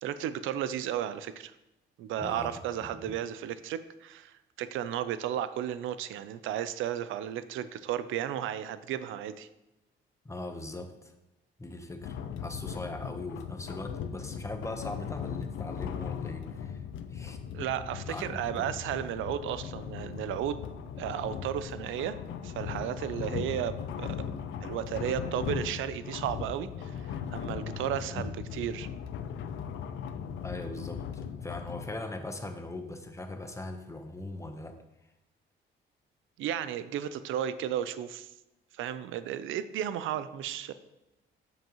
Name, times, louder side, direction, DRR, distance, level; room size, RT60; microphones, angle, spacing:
voice 1, 0.0-1.5 2.0-9.5 17.5-20.6 21.0-22.2 22.4-24.2 24.6-28.9 36.4-38.3 38.7-40.7, right 10 dB, 85° right, 13 dB, 0.5 m, -34 dB
voice 2, 2.2-3.1 10.2-11.1 11.6-16.8 17.1-17.4 18.1-18.8 28.1-28.3 30.4-34.8, left 2 dB, 15° left, 6 dB, 0.9 m, -40 dB
sound 1, 12.0-31.9, left 7 dB, 75° left, 0.5 m, -38 dB
7.8 x 7.5 x 3.0 m, 0.93 s
cardioid pair, 90°, 20 cm